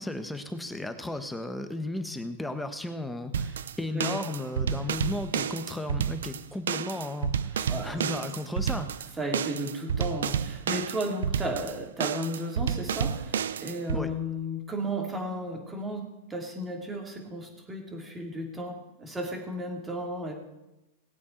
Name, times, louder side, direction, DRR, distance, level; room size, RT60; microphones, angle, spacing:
voice 1, 0.0-9.1 13.9-14.1, left 2 dB, 5° left, 7 dB, 1.2 m, -35 dB
sound 1, 3.3-14.0, right 7 dB, 80° right, 0.5 m, -31 dB
voice 2, 7.7-8.0 9.2-20.3, equal, 15° right, 1 dB, 2.9 m, -34 dB
18.5 x 8.4 x 4.5 m, 0.95 s
hypercardioid pair, 115°, 0 cm